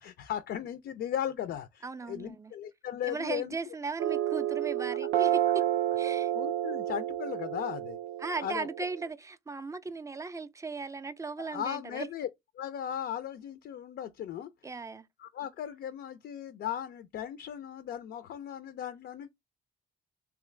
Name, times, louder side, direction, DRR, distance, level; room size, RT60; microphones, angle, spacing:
voice 1, 0.0-3.5 5.1-5.3 6.4-8.0 8.4-8.7 11.4-12.3 12.6-14.5 15.2-19.3, left 10 dB, 60° left, 0.4 m, -37 dB
voice 2, 1.8-2.5 3.0-5.6 6.0-6.3 8.2-12.1 14.6-15.1, right 4 dB, 15° right, 0.3 m, -37 dB
sound 1, 4.0-9.1, right 12 dB, 85° right, 0.4 m, -30 dB
3.0 x 2.4 x 3.1 m
cardioid pair, 90°, 20 cm